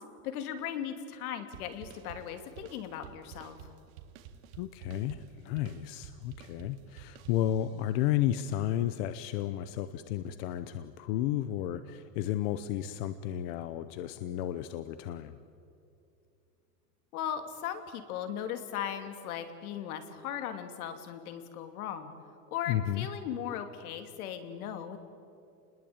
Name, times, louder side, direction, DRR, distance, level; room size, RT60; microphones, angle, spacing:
voice 1, 0.2-3.6 17.1-22.1 22.5-25.0, left 9 dB, 65° left, 7 dB, 3.0 m, -38 dB
sound 1, 1.5-7.9, right 8 dB, 60° right, 2.2 m, -51 dB
voice 2, 4.6-15.4 22.7-23.1, left 12 dB, 40° left, 11 dB, 0.9 m, -32 dB
29.5 x 20.5 x 9.0 m, 2.5 s
supercardioid pair, 170°, 47 cm